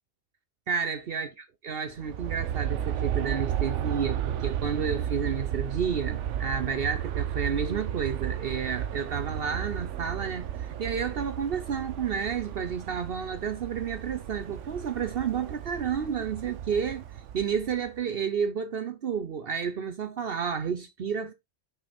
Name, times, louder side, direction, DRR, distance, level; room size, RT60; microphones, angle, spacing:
voice 1, 0.7-1.3 1.6-17.0 17.3-21.3, right 6 dB, 60° right, 0.9 m, -31 dB
Aircraft, 1.9-18.0, right 10 dB, 85° right, 1.0 m, -33 dB
6.2 x 5.0 x 4.2 m
omnidirectional pair, 1.2 m